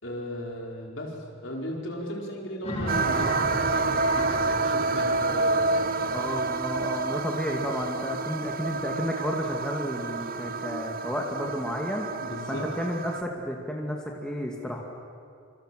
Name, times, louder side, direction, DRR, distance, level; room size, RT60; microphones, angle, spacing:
voice 1, 0.0-6.4 10.1-10.3 12.2-12.7, equal, 60° left, -1 dB, 4.8 m, -36 dB
sound 1, 2.6-7.9, left 1 dB, 30° left, 5.3 m, -36 dB
sound 2, 2.9-13.2, right 3 dB, 40° right, 0.7 m, -28 dB
voice 2, 6.1-12.1 12.5-14.8, equal, 5° left, -1 dB, 2.3 m, -32 dB
27.0 x 26.0 x 7.8 m, 2.3 s
head